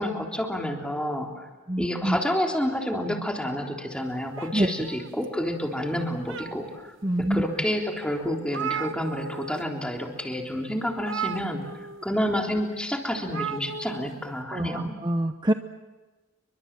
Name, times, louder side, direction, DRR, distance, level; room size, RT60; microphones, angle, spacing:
voice 1, 0.0-1.5 1.8-6.9 7.3-11.6 12.0-14.9, equal, 5° left, 1 dB, 3.5 m, -29 dB
voice 2, 1.7-2.2 4.5-4.7 7.0-7.4 14.5-15.5, right 1 dB, 20° right, 7 dB, 0.8 m, -25 dB
sound 1, 4.3-5.5 6.0-6.9 7.5-7.6 8.0-8.1 8.2-9.6 9.9-10.1 11.0-12.0 13.2-14.1, right 7 dB, 85° right, 1.1 m, -35 dB
30.0 x 24.0 x 7.5 m, 1.2 s
head